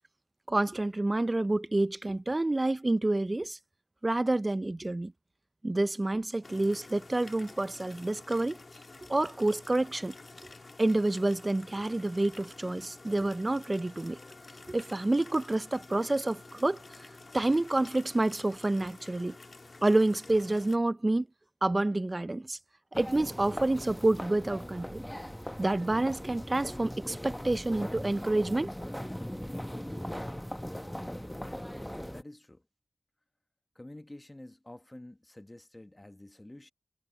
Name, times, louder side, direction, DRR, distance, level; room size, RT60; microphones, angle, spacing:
voice 1, 0.5-3.6 4.0-5.1 5.6-8.6 9.1-10.1 10.8-14.2 14.7-16.8 17.3-19.4 19.8-21.3 21.6-22.6 23.0-25.0 25.6-28.7 29.0-29.1, right 2 dB, 35° right, 0.5 m, -28 dB
sound 1, 6.4-20.8, left 3 dB, 55° left, 1.5 m, -50 dB
sound 2, 22.9-32.2, equal, 5° left, 0.9 m, -39 dB
voice 2, 32.1-32.6 33.7-36.7, left 1 dB, 25° left, 1.3 m, -49 dB
wide cardioid pair, 55°, 0 cm